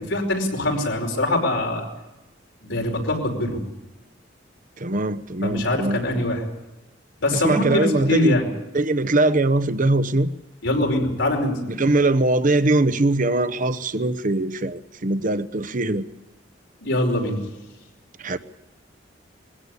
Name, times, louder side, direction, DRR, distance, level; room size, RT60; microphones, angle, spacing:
voice 1, 0.0-1.8 2.6-3.6 5.4-6.4 7.2-8.5 10.6-11.6 16.8-17.4, left 1 dB, 90° left, 1 dB, 5.1 m, -23 dB
voice 2, 4.8-6.3 7.3-8.4 8.7-10.3 11.7-16.0 18.2-18.4, right 2 dB, 45° right, 13 dB, 0.9 m, -21 dB
21.5 x 16.5 x 8.3 m, 1.0 s
head